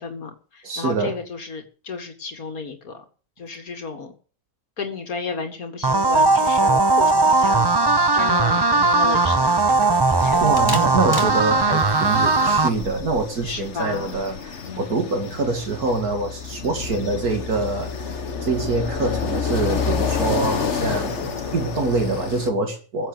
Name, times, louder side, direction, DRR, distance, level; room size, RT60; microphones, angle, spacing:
voice 1, 0.0-3.0 3.4-4.1 4.8-9.8 10.1-10.4 13.4-14.2 14.7-15.0, left 4 dB, 70° left, 5 dB, 2.4 m, -33 dB
voice 2, 0.6-1.2 10.4-18.1 18.4-23.1, right 3 dB, 80° right, 4 dB, 2.7 m, -25 dB
sound 1, 5.8-12.7, right 3 dB, 25° right, 0.6 m, -18 dB
sound 2, 7.0-7.1 7.4-7.7 8.1-8.2 8.4-12.9, left 1 dB, 15° left, 2.0 m, -35 dB
sound 3, 10.1-22.5, left 6 dB, 50° left, 1.6 m, -29 dB
16.0 x 7.7 x 7.9 m, 0.40 s
omnidirectional pair, 1.6 m